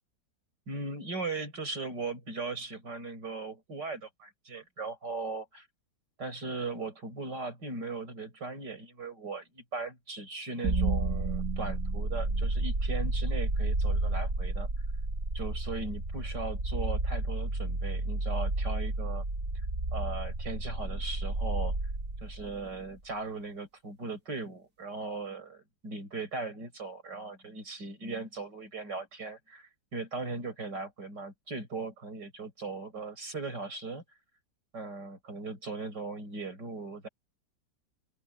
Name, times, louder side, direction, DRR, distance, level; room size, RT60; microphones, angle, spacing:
voice 1, 0.7-5.7 6.2-14.7 15.3-19.2 19.9-21.7 22.2-34.0 34.7-37.1, right 3 dB, 85° right, 7.3 m, -38 dB
sound 1, 10.6-22.7, right 2 dB, 50° right, 4.6 m, -31 dB
omnidirectional pair, 1.8 m